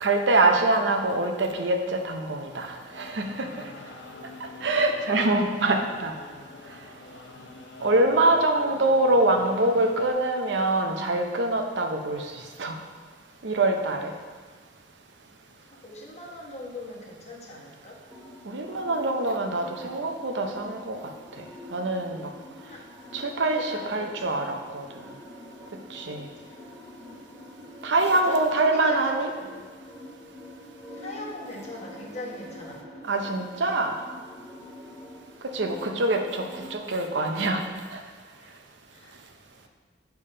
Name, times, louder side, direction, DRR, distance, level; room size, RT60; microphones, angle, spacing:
voice 1, 0.0-3.5 4.4-6.1 7.8-12.3 12.6-12.8 13.4-14.1 18.5-21.0 21.7-22.3 23.1-24.8 25.9-26.3 27.8-29.3 33.1-33.9 35.5-37.6 37.9-38.0, right 2 dB, 75° right, 4 dB, 0.6 m, -24 dB
sound 1, 2.5-10.1, left 3 dB, 80° left, 0.6 m, -46 dB
voice 2, 8.5-9.0 15.8-18.0 22.7-22.8 23.1-24.4 28.1-29.6 30.9-32.8 38.9-39.1, left 1 dB, 40° left, -3 dB, 1.2 m, -41 dB
sound 2, 18.1-36.8, left 1 dB, 5° left, 1.0 m, -46 dB
6.8 x 3.5 x 5.4 m, 1.5 s
head